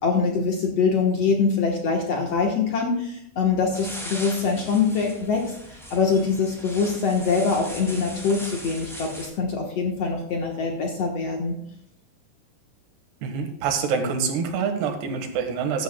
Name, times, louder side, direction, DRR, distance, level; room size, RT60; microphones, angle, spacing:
voice 1, 0.0-11.6, left 5 dB, 70° left, 1 dB, 1.5 m, -24 dB
sound 1, 3.7-9.3, equal, ahead, 0.7 m, -39 dB
voice 2, 13.2-15.8, right 6 dB, 75° right, 5 dB, 3.5 m, -26 dB
14.5 x 10.5 x 2.3 m, 0.73 s
omnidirectional pair, 4.8 m